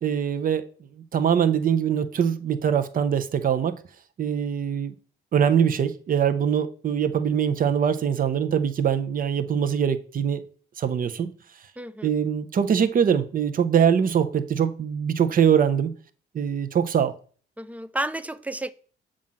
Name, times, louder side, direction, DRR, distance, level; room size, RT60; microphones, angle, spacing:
voice 1, 0.0-0.7 1.1-3.8 4.2-4.9 5.3-10.4 10.8-11.3 12.0-15.9 16.3-17.1, right 8 dB, 45° right, 0.7 m, -23 dB
voice 2, 11.8-12.1 17.6-18.7, right 1 dB, 5° right, 0.4 m, -31 dB
7.3 x 2.5 x 5.6 m
cardioid pair, 90°, 20 cm